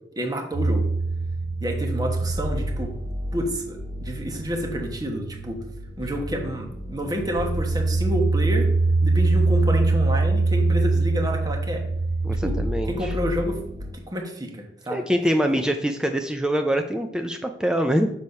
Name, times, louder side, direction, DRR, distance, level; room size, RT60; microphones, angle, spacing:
voice 1, 0.2-0.9 1.6-2.9 3.3-5.6 6.0-8.7 9.0-11.8 12.4-12.6 12.9-13.6 13.9-15.0, equal, 20° right, 2 dB, 1.1 m, -29 dB
sound 1, 0.5-13.9, right 3 dB, 45° right, 2.8 m, -25 dB
voice 2, 12.2-13.1 14.9-18.1, equal, 5° right, 5 dB, 0.3 m, -24 dB
6.5 x 4.1 x 5.3 m, 0.75 s
head